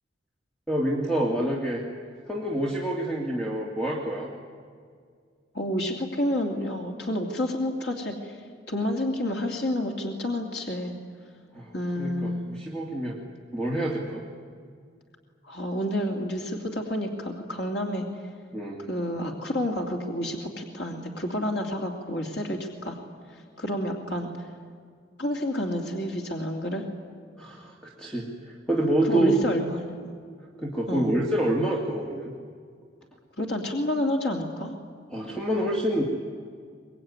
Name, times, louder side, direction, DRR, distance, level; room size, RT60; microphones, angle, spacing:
voice 1, 0.7-1.8 2.3-4.3 11.5-13.2 13.5-14.3 18.5-18.8 27.4-29.3 30.6-32.3 35.1-36.0, right 1 dB, 5° left, -1 dB, 2.2 m, -27 dB
voice 2, 5.5-8.4 8.7-11.0 11.7-12.5 15.4-18.0 18.9-23.0 23.3-24.5 25.2-26.8 28.8-30.0 30.9-31.1 33.4-34.8, left 1 dB, 65° left, 1 dB, 2.6 m, -29 dB
24.0 x 21.5 x 9.6 m, 2.1 s
head